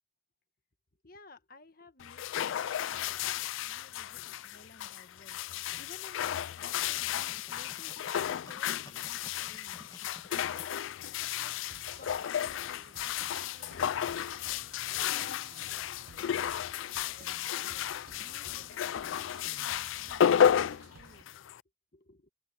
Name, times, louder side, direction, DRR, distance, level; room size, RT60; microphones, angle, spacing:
voice 1, 1.0-9.8 10.3-11.6 12.0-13.9 14.5-21.3 21.9-22.3, left 2 dB, 45° left, 1.6 m, -58 dB
sound 1, 2.0-21.6, left 9 dB, 70° left, 0.3 m, -33 dB
sound 2, 6.5-10.6, left 2 dB, 20° left, 2.2 m, -53 dB
sound 3, 11.3-21.2, right 3 dB, 50° right, 0.7 m, -55 dB
open air
head